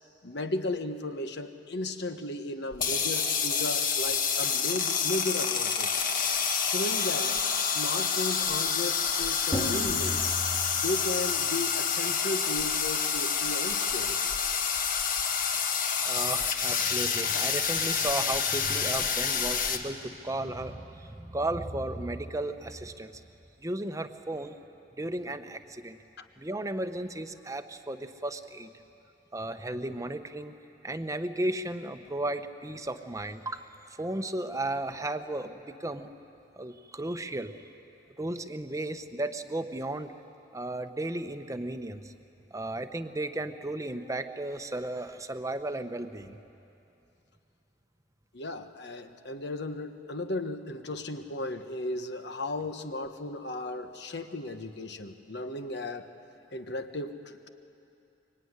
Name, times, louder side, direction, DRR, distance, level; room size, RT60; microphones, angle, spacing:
voice 1, 0.2-5.9 6.6-10.3 10.7-14.3 26.2-26.3 48.3-56.1 56.5-57.5, left 2 dB, 65° left, 7 dB, 1.4 m, -35 dB
sound 1, 2.7-19.8, left 6 dB, 50° left, 1.5 m, -28 dB
sound 2, 9.5-11.5, equal, 25° left, 1.9 m, -35 dB
voice 2, 16.1-23.2 23.6-24.5 25.0-26.0 26.4-28.7 29.3-30.5 30.8-33.6 34.0-36.1 36.6-37.5 38.2-40.1 40.5-42.1 42.5-46.4, right 1 dB, 20° right, 8 dB, 1.0 m, -34 dB
25.0 x 23.5 x 9.8 m, 2.8 s
head